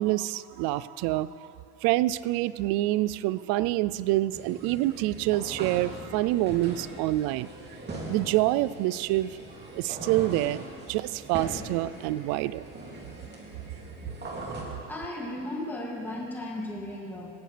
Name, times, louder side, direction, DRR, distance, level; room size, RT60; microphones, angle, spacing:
voice 1, 0.0-1.5 1.8-7.5 8.1-9.4 9.8-10.6 10.9-12.6, right 16 dB, 75° right, 17 dB, 0.5 m, -26 dB
sound 1, 4.3-14.6, right 2 dB, 25° right, 2.6 m, -41 dB
voice 2, 14.9-17.3, left 1 dB, 5° left, -4 dB, 2.4 m, -35 dB
19.5 x 16.0 x 3.4 m, 2.6 s
cardioid pair, 120°, 38 cm